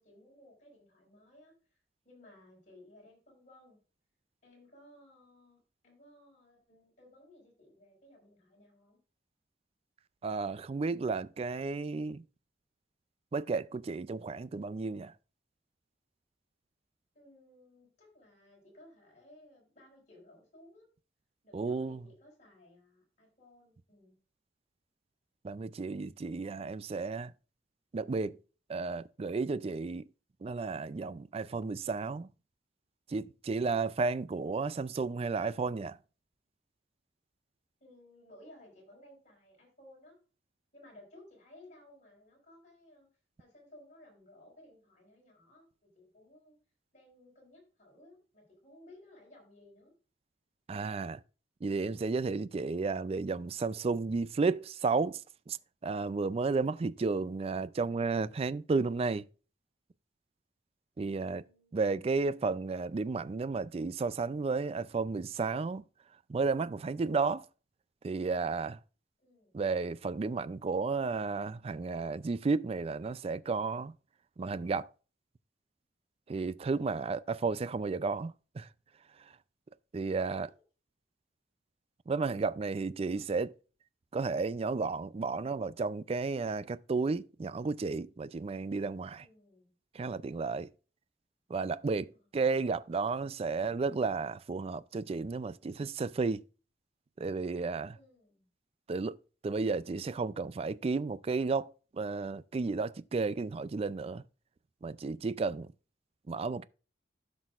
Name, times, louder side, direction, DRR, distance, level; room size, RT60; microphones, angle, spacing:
voice 1, 0.0-1.8 2.0-3.8 4.4-9.0 17.1-20.9 21.4-24.2 37.8-40.2 40.7-43.1 43.4-46.5 46.9-49.9 57.1-57.4 61.4-62.0 69.2-69.5 80.0-80.5 83.0-83.3 89.1-89.7 97.9-98.5, left 1 dB, 40° left, 4.9 m, -58 dB
voice 2, 10.2-12.2 13.3-15.1 21.5-22.0 25.4-27.3 27.9-28.4 28.7-30.1 30.4-32.3 33.1-36.0 50.7-51.2 51.6-55.2 55.5-55.6 55.8-59.3 61.0-61.4 61.7-65.8 66.3-67.5 68.0-68.8 69.5-73.9 74.4-74.9 76.3-78.7 79.9-80.5 82.1-83.5 84.1-89.3 89.9-90.7 91.5-96.4 97.2-98.0 98.9-99.2 99.4-104.2 104.8-105.7 106.3-106.6, right 4 dB, 35° right, 0.4 m, -33 dB
15.5 x 6.1 x 2.4 m
head